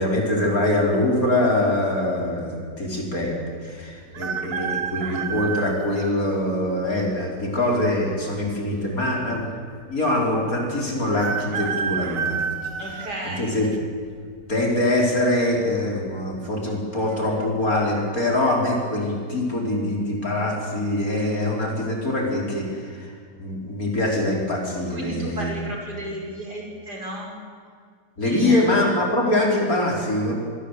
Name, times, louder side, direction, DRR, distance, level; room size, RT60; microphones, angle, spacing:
voice 1, 0.0-9.5 9.9-12.6 12.9-13.7 14.5-23.1 23.4-25.5 28.2-30.3, left 1 dB, 55° left, -1 dB, 5.7 m, -23 dB
sound 1, 4.1-6.2 6.8-6.9 8.0-8.7 9.0-9.1 9.2-9.3 11.2-13.8 14.3-14.7 15.8-16.2 16.4-16.5 17.1-17.5 17.9-18.1, right 6 dB, 85° right, 2.0 m, -30 dB
voice 2, 12.8-13.5 24.9-27.3 28.2-28.6, right 1 dB, 65° right, 1 dB, 6.0 m, -33 dB
27.0 x 21.0 x 8.5 m, 2.1 s
omnidirectional pair, 1.8 m